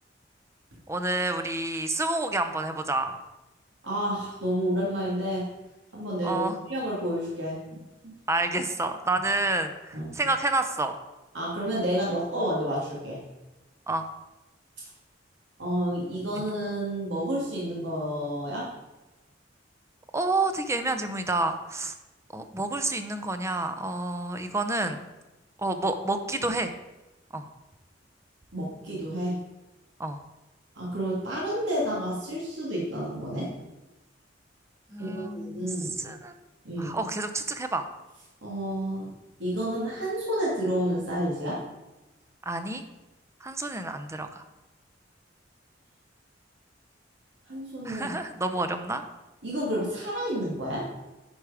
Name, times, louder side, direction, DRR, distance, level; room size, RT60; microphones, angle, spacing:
voice 1, 0.9-3.2 6.2-6.6 8.3-11.0 13.9-14.1 20.1-21.9 22.3-25.1 25.6-26.7 27.3-27.5 30.0-30.2 34.9-36.3 36.8-37.9 42.4-42.8 43.4-44.4 47.8-49.0, right 2 dB, 15° right, 8 dB, 0.6 m, -29 dB
voice 2, 3.8-5.5 5.9-7.8 8.0-8.2 9.9-10.1 11.3-13.2 15.6-18.7 28.5-29.4 30.8-33.5 35.0-35.9 36.6-36.9 38.4-39.1 39.4-41.6 47.5-48.2 49.4-50.9, equal, 80° right, -5 dB, 2.3 m, -30 dB
10.5 x 4.8 x 4.9 m, 1.0 s
head